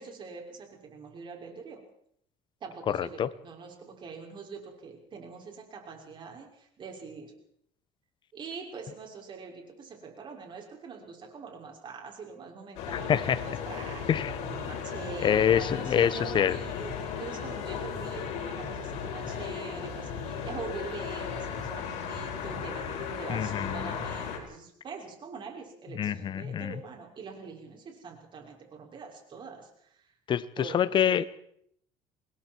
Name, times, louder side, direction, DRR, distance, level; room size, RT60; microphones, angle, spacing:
voice 1, 0.0-1.8 2.6-7.3 8.3-30.1 30.6-30.9, right 5 dB, 40° right, 1 dB, 6.3 m, -44 dB
voice 2, 2.9-3.3 12.9-13.4 14.1-14.3 15.2-16.6 23.3-23.9 26.0-26.7 30.3-31.2, left 9 dB, 40° left, 15 dB, 1.2 m, -26 dB
sound 1, 12.7-24.4, left 6 dB, 70° left, 6.7 m, -36 dB
28.0 x 20.5 x 4.7 m, 0.68 s
cardioid pair, 115°, 12 cm